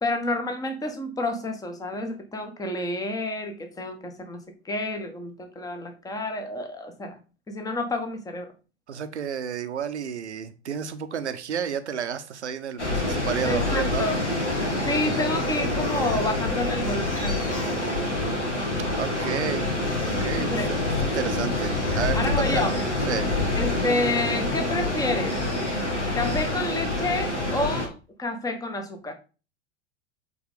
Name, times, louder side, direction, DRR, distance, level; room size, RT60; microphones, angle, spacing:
voice 1, 0.0-7.2 7.5-8.5 13.4-14.2 14.8-17.9 20.5-20.8 22.1-22.7 23.5-25.4 26.1-29.1, left 2 dB, 10° left, 6 dB, 1.2 m, -29 dB
voice 2, 8.9-14.1 18.9-19.7 20.0-22.7 23.1-23.3, right 7 dB, 75° right, 10 dB, 0.9 m, -31 dB
sound 1, 12.8-27.9, left 2 dB, 90° left, 1.8 m, -26 dB
8.4 x 4.0 x 3.6 m, 0.33 s
figure-of-eight pair, 90°, 34 cm